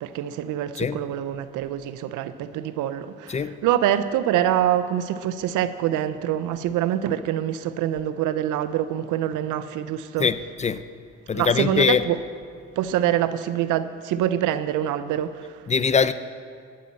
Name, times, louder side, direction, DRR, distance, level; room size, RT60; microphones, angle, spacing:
voice 1, 0.0-10.3 11.3-12.2 12.8-15.6, right 11 dB, 90° right, 0.6 m, -25 dB
voice 2, 10.2-10.8 11.3-12.0 15.7-16.1, left 6 dB, 25° left, 0.5 m, -22 dB
11.5 x 8.5 x 7.6 m
cardioid pair, 90°, 30 cm